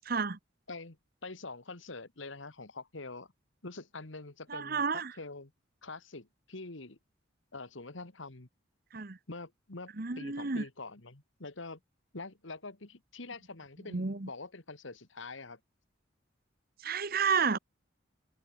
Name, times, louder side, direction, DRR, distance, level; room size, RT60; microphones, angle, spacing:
voice 1, 0.1-0.4 4.5-5.1 8.9-9.2 10.0-10.6 13.9-14.3 16.8-17.6, right 5 dB, 45° right, 1.0 m, -31 dB
voice 2, 1.2-3.3 3.6-5.5 5.8-7.0 7.5-8.5 9.3-11.8 12.1-15.6, left 3 dB, 70° left, 1.9 m, -45 dB
head